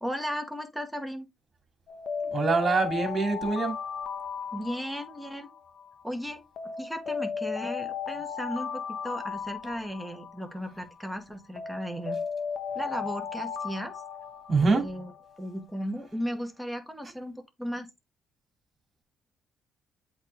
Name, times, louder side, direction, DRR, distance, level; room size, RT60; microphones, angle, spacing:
voice 1, 0.0-1.3 4.5-5.5 6.0-6.4 6.8-12.2 12.8-13.9 14.6-15.1 15.4-17.9, equal, ahead, 1.8 m, -35 dB
Alarm, 1.9-6.0 6.6-11.0 11.6-15.4, left 6 dB, 55° left, 1.0 m, -36 dB
voice 2, 2.3-3.8 14.5-14.8, right 4 dB, 40° right, 2.5 m, -24 dB
7.9 x 4.2 x 3.4 m
cardioid pair, 90°, 0 cm